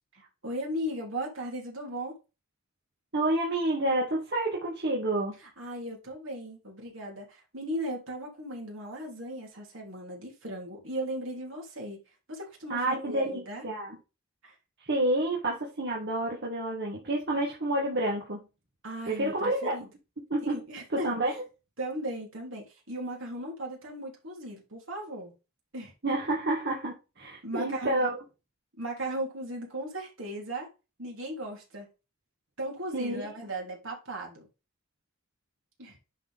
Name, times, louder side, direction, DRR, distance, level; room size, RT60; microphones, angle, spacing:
voice 1, 0.1-2.1 5.4-12.0 12.3-13.6 14.4-14.5 18.8-19.9 20.5-21.4 21.8-25.3 25.7-25.9 27.4-28.0 28.8-30.7 31.0-31.9 32.6-34.5 35.8-36.0, right 1 dB, 70° right, 3.4 m, -37 dB
voice 2, 3.1-5.4 12.7-14.0 14.8-18.4 19.1-19.8 20.3-20.6 20.9-21.3 26.0-28.2 32.9-33.3, right 1 dB, 55° right, 1.9 m, -29 dB
10.5 x 4.3 x 3.6 m
head